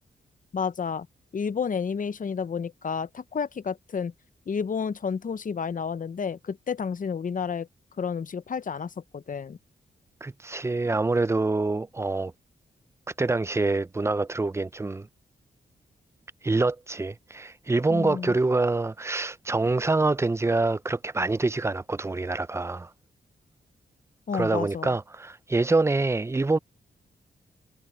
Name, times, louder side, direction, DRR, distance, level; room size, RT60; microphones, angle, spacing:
voice 1, 0.5-1.1 1.3-4.1 4.5-7.7 8.0-9.6 17.9-18.4 24.3-24.9, left 6 dB, 45° left, 0.8 m, -31 dB
voice 2, 10.2-12.3 13.2-15.1 16.4-22.9 24.3-26.6, right 3 dB, 15° right, 0.5 m, -25 dB
cardioid pair, 80°, 19 cm